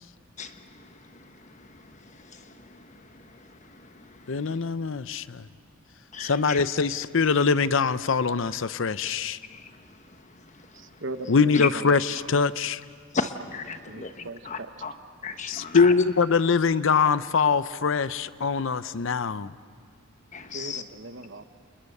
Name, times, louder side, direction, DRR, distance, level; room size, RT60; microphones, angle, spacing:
voice 1, 0.4-0.9 1.2-1.3 1.6-1.7 2.2-3.0 3.7-4.5 6.1-6.6 9.5-9.6 11.5-11.7 13.1-14.9 15.2-15.9 20.3-20.8, left 4 dB, 35° left, 1.2 m, -35 dB
voice 2, 4.3-5.4 6.2-9.4 11.3-12.8 15.5-19.5, left 5 dB, 65° left, 0.6 m, -23 dB
voice 3, 10.7-12.3 13.9-14.4 20.5-21.4, right 2 dB, 60° right, 1.2 m, -39 dB
30.0 x 29.0 x 6.7 m
head